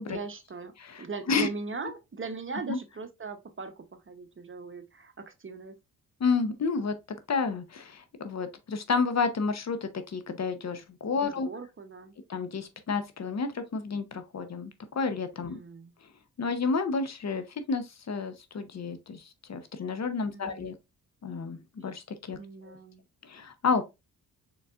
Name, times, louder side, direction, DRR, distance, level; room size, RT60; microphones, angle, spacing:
voice 1, 0.1-5.8 11.2-12.2 15.5-15.9 20.3-20.7 21.8-21.9 22.4-23.0, right 4 dB, 30° right, 0.8 m, -40 dB
voice 2, 0.8-1.5 2.7-2.8 6.2-11.5 12.3-15.6 16.4-20.7 21.2-22.4 22.7-22.8 23.2-23.8, left 4 dB, 45° left, 0.8 m, -31 dB
4.2 x 3.8 x 2.4 m
supercardioid pair, 50°, 39 cm